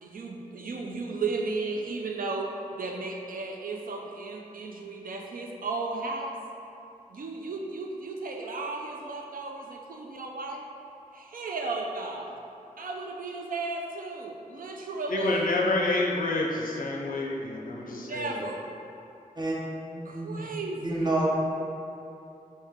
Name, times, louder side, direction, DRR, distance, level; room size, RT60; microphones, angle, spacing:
voice 1, 0.0-2.5 2.8-6.4 7.1-10.6 11.1-12.3 12.8-15.5 17.9-18.7 20.1-21.1, right 3 dB, 75° right, 0 dB, 0.4 m, -34 dB
voice 2, 15.1-18.3, left 2 dB, 75° left, -1 dB, 0.5 m, -28 dB
voice 3, 19.9-20.4 20.8-21.3, right 2 dB, 30° right, -5 dB, 0.7 m, -29 dB
3.2 x 2.7 x 3.5 m, 2.8 s
wide cardioid pair, 85°, 15 cm